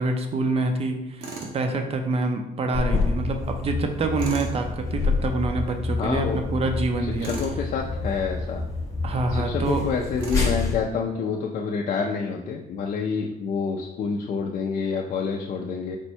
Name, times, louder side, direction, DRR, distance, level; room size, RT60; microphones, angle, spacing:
voice 1, 0.0-7.3 9.0-9.8, right 3 dB, 35° right, 5 dB, 0.5 m, -26 dB
Tools, 1.2-1.6 4.2-4.5 7.2-7.6 10.2-10.6, right 3 dB, 70° right, 0.9 m, -36 dB
sound 1, 2.7-10.8, left 3 dB, 20° left, 0.9 m, -28 dB
voice 2, 6.0-6.4 7.2-8.6 9.3-16.0, left 5 dB, 50° left, 0 dB, 0.4 m, -28 dB
4.4 x 2.1 x 4.4 m, 0.94 s
cardioid pair, 110°, 17 cm